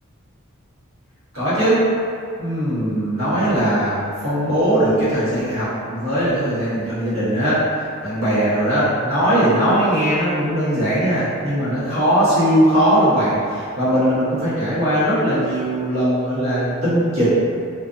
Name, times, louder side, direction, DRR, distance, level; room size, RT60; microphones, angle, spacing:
voice 1, 1.3-1.8 2.4-7.6 8.0-17.3, equal, 75° right, -12 dB, 1.2 m, -19 dB
2.5 x 2.4 x 2.4 m, 2.3 s
head